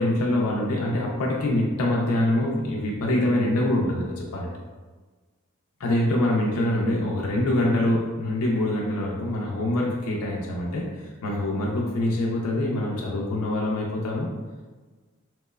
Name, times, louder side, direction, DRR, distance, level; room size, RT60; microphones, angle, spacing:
voice 1, 0.0-4.5 5.8-14.3, left 1 dB, 85° left, -2 dB, 0.4 m, -25 dB
2.8 x 2.0 x 2.2 m, 1.4 s
head